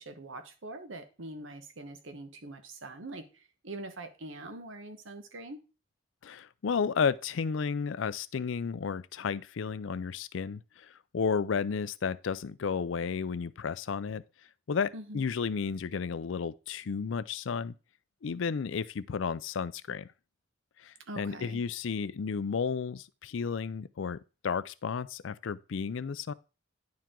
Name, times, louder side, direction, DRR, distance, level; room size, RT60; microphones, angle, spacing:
voice 1, 0.0-5.6 14.9-15.2 21.1-21.6, right 2 dB, 75° right, 1.1 m, -43 dB
voice 2, 6.2-14.2 14.7-17.7 18.2-20.1 20.8-26.3, left 6 dB, 70° left, 0.4 m, -32 dB
10.5 x 4.7 x 3.7 m
head